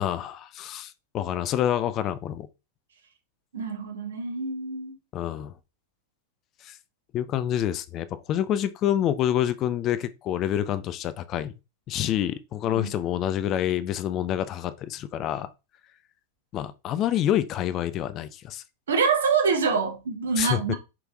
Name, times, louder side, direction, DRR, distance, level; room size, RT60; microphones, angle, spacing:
voice 1, 0.0-2.5 5.1-5.5 6.6-6.8 7.1-11.5 11.9-15.5 16.5-18.6 20.4-20.6, left 11 dB, 35° left, 0.3 m, -27 dB
voice 2, 3.5-5.0 12.7-12.9 18.9-20.7, right 5 dB, 65° right, 0.8 m, -26 dB
4.9 x 3.0 x 2.2 m
figure-of-eight pair, 90°, 0 cm